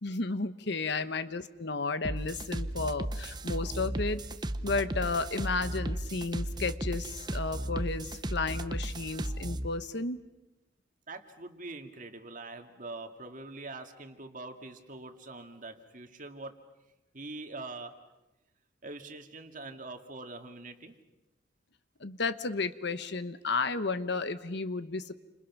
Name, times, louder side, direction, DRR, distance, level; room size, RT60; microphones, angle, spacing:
voice 1, 0.0-4.2 4.6-10.2 22.0-25.1, left 3 dB, 60° left, 12 dB, 1.1 m, -33 dB
sound 1, 2.0-9.7, right 1 dB, 20° right, 0.8 m, -35 dB
voice 2, 11.1-16.6 17.1-18.0 18.8-21.0, right 2 dB, 40° right, 5 dB, 2.1 m, -44 dB
30.0 x 26.5 x 6.1 m, 1.0 s
head